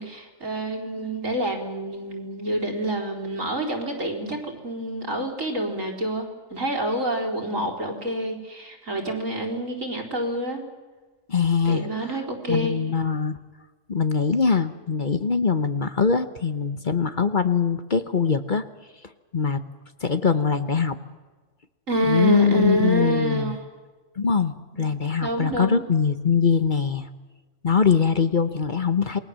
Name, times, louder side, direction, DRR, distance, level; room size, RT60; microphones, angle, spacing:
voice 1, 0.0-10.6 11.6-12.8 21.9-23.6 24.7-24.9 25.2-25.8, right 1 dB, 75° right, 1 dB, 4.5 m, -27 dB
voice 2, 11.3-12.2 12.5-13.4 13.9-18.6 19.3-19.6 20.0-21.0 22.1-23.6 24.2-27.1 27.6-29.2, left 6 dB, 40° left, 11 dB, 1.1 m, -22 dB
28.0 x 21.0 x 7.6 m, 1.3 s
omnidirectional pair, 1.4 m